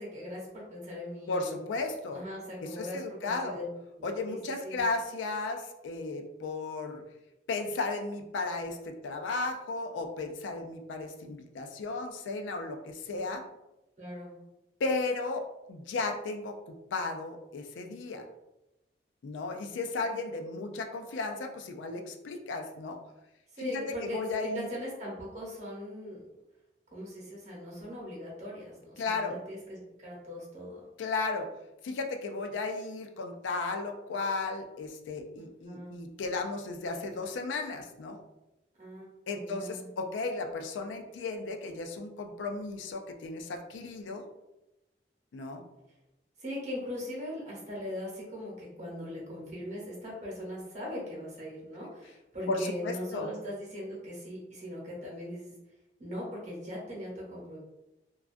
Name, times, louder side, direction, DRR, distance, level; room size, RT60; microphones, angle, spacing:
voice 1, 0.0-1.6 2.1-3.7 3.9-4.8 14.0-14.3 20.0-20.2 23.5-26.2 26.9-30.8 35.4-36.0 38.8-39.9 46.4-55.5 56.0-57.6, left 1 dB, 40° right, -4 dB, 0.8 m, -40 dB
voice 2, 1.3-2.2 2.6-3.6 4.0-7.0 7.5-13.4 14.8-18.3 19.2-23.0 23.6-24.7 29.0-29.4 31.0-31.5 31.8-38.2 39.3-44.2 45.3-45.6 52.5-53.3, left 3 dB, 85° left, 5 dB, 0.3 m, -35 dB
2.3 x 2.2 x 2.4 m, 0.95 s
head